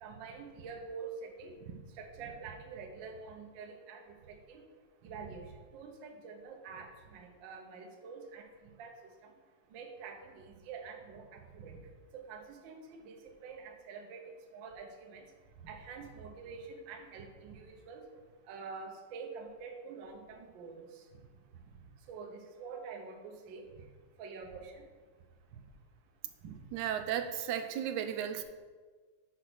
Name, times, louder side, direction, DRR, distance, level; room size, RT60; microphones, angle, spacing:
voice 1, 0.0-4.6 5.0-8.5 8.8-8.9 9.2-9.3 9.7-11.8 12.1-15.2 15.6-18.0 18.5-20.9 21.1-21.2 22.1-23.6 24.2-24.8 25.5-25.6 26.4-26.6, right 5 dB, 70° right, 3 dB, 1.1 m, -46 dB
voice 2, 26.7-28.4, right 9 dB, 90° right, 7 dB, 2.0 m, -34 dB
6.6 x 5.0 x 6.3 m, 1.5 s
omnidirectional pair, 3.4 m